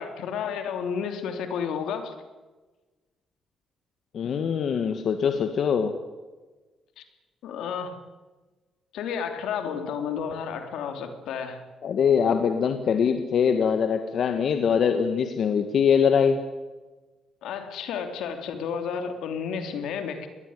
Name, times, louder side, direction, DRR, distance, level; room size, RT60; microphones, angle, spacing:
voice 1, 0.0-2.1 7.0-7.1 7.4-8.0 8.9-11.6 17.4-20.3, left 7 dB, 85° left, 7 dB, 3.1 m, -31 dB
voice 2, 4.1-5.9 11.8-16.4, left 7 dB, 60° left, 7 dB, 1.7 m, -23 dB
21.5 x 18.0 x 9.7 m, 1.3 s
cardioid pair, 90°, 0 cm